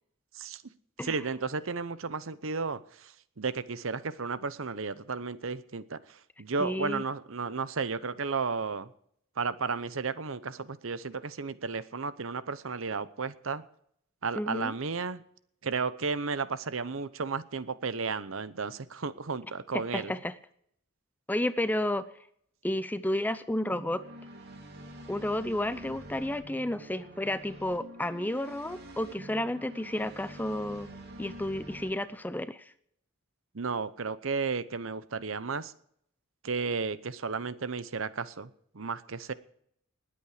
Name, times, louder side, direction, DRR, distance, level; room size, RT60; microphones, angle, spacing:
voice 1, 1.0-8.9 9.4-13.6 14.2-15.2 15.6-20.1 33.5-35.7 36.4-39.3, right 4 dB, 65° right, 15 dB, 0.8 m, -33 dB
voice 2, 6.6-7.0 14.4-14.7 19.7-20.3 21.3-22.1 22.6-24.0 25.1-30.9 31.2-32.6, left 1 dB, 10° left, 14 dB, 0.5 m, -31 dB
sound 1, 23.7-31.9, equal, 50° right, 2.7 m, -47 dB
20.0 x 8.6 x 5.0 m, 0.68 s
head